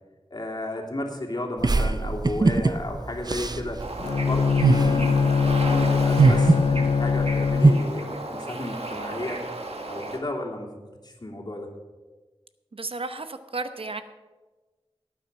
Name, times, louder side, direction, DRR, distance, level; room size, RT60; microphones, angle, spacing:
voice 1, 0.3-3.8 4.2-9.4 9.9-10.7 11.0-11.7, left 1 dB, 45° left, 0 dB, 2.9 m, -33 dB
sound 1, 1.6-7.7, right 3 dB, 40° right, 0.6 m, -22 dB
Bird / Ocean, 3.8-10.2, right 2 dB, 85° right, 1.7 m, -34 dB
Bowed string instrument, 4.0-8.1, left 5 dB, 60° left, 0.4 m, -22 dB
voice 2, 12.7-14.0, right 3 dB, 65° right, 9 dB, 0.9 m, -33 dB
18.5 x 8.8 x 5.4 m, 1.3 s
wide cardioid pair, 50°, 10 cm